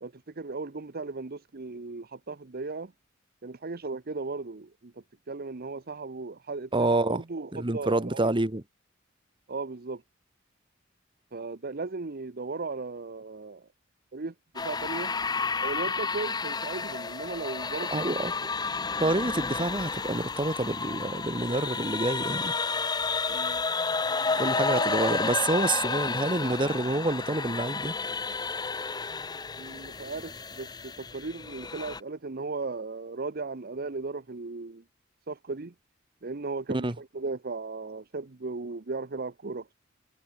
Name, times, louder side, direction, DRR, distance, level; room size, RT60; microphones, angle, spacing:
voice 1, 0.0-2.9 3.4-4.9 5.3-8.3 9.5-10.0 11.3-13.7 14.1-14.3 14.6-15.1 15.6-18.3 23.3-23.6 24.5-25.2 29.6-34.8 35.3-35.7 36.2-39.7, right 3 dB, 50° right, 0.9 m, -36 dB
voice 2, 6.7-7.2 7.5-8.6 17.9-18.3 19.0-22.5 24.4-27.9 36.7-36.9, right 2 dB, 25° right, 1.4 m, -28 dB
sound 1, 14.6-32.0, left 4 dB, 20° left, 0.7 m, -31 dB
head